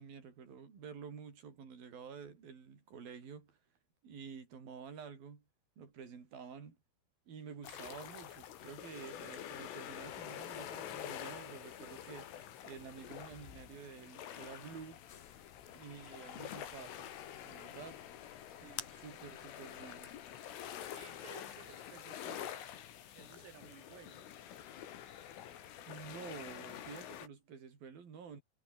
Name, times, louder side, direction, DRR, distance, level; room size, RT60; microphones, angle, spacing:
voice 1, 0.0-3.6 4.0-5.4 5.8-6.8 7.3-12.3 12.6-15.1 15.7-17.1 17.4-18.0 18.9-20.1 25.9-28.4, right 6 dB, 45° right, 6.2 m, -50 dB
sound 1, 7.6-27.3, left 10 dB, 70° left, 5.1 m, -47 dB
sound 2, 15.1-20.3, left 7 dB, 45° left, 3.4 m, -54 dB
voice 2, 18.5-18.9 20.7-22.7 23.2-24.4, right 10 dB, 85° right, 5.8 m, -57 dB
omnidirectional pair, 6.0 m